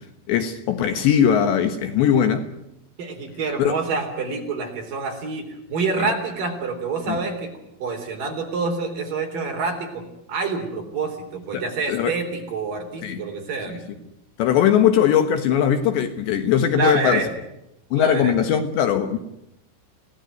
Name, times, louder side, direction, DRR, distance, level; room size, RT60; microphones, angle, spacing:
voice 1, 0.3-2.4 3.6-3.8 7.1-7.2 11.5-11.6 11.9-12.1 13.0-13.2 14.4-17.2 17.9-19.2, left 9 dB, 70° left, 3.3 m, -20 dB
voice 2, 3.0-7.5 7.8-10.0 10.3-13.9 16.7-17.3 18.0-18.3, right 4 dB, 45° right, 4.9 m, -27 dB
28.0 x 17.5 x 9.3 m
omnidirectional pair, 5.9 m